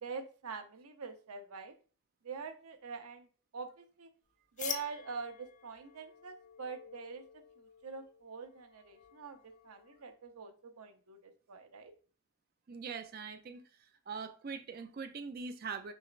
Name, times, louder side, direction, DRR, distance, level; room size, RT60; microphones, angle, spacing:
voice 1, 0.0-1.7 2.2-3.3 3.5-4.1 4.6-11.9, right 5 dB, 85° right, 0.7 m, -45 dB
sound 1, 4.6-10.1, left 8 dB, 35° left, 0.4 m, -47 dB
voice 2, 12.7-13.6 14.1-15.9, right 5 dB, 40° right, 0.4 m, -42 dB
6.2 x 3.1 x 2.4 m
head